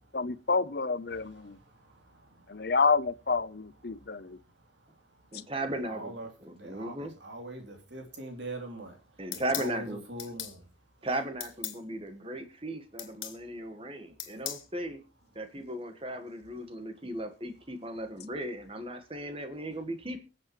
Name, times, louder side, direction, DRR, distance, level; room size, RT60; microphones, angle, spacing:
voice 1, 0.1-1.6 2.5-4.4, left 4 dB, 55° left, 0.7 m, -28 dB
voice 2, 1.1-2.7 3.9-4.1 5.7-9.0 9.3-10.6 14.4-14.5, right 1 dB, 65° right, 3.2 m, -43 dB
voice 3, 5.3-6.1 6.4-7.1 9.2-10.0 11.0-15.0 15.4-20.2, right 1 dB, 30° right, 1.6 m, -36 dB
sound 1, 9.3-9.7 10.2-10.6 11.4-11.8 13.0-13.4 14.2-14.7, left 12 dB, 85° left, 2.1 m, -37 dB
24.0 x 8.0 x 3.1 m
head